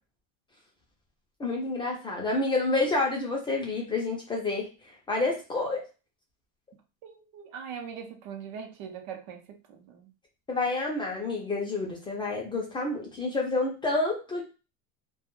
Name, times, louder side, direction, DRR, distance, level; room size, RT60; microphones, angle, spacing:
voice 1, 1.4-4.7 5.1-5.8 10.5-14.4, left 3 dB, 15° left, 0.4 m, -29 dB
voice 2, 7.0-10.1, right 7 dB, 60° right, 0.6 m, -41 dB
2.2 x 2.2 x 2.9 m
cardioid pair, 150°, 35 cm